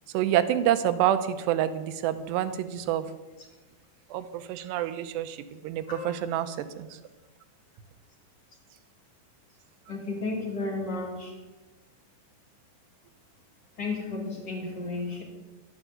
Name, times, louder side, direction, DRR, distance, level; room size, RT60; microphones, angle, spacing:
voice 1, 0.1-3.1 4.1-6.9, right 11 dB, 85° right, 12 dB, 2.9 m, -27 dB
voice 2, 9.9-11.3 13.8-15.2, left 3 dB, 35° left, 0 dB, 2.0 m, -33 dB
11.5 x 10.0 x 8.1 m, 1.2 s
omnidirectional pair, 4.9 m